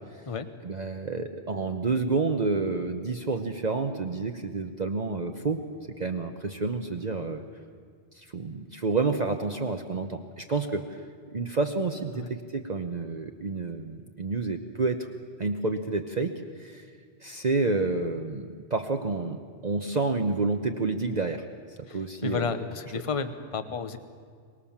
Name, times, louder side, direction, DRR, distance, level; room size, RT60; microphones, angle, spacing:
voice 1, 0.6-5.6 6.0-7.4 8.1-15.1 15.4-16.9 17.2-22.5, right 3 dB, 40° right, 5 dB, 1.0 m, -29 dB
voice 2, 21.9-24.0, left 5 dB, 30° left, 11 dB, 1.0 m, -32 dB
24.0 x 20.0 x 7.3 m, 2.1 s
omnidirectional pair, 1.2 m